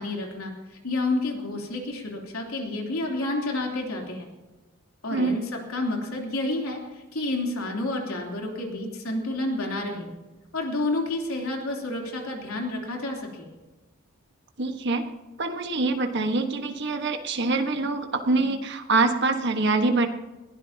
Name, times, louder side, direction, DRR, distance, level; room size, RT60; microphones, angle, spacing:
voice 1, 0.0-4.3 5.0-10.1 10.5-13.5, left 2 dB, 80° left, 0 dB, 3.4 m, -30 dB
voice 2, 14.6-15.0 15.4-20.1, right 3 dB, 55° right, 5 dB, 1.5 m, -24 dB
21.5 x 16.0 x 2.9 m, 1.1 s
head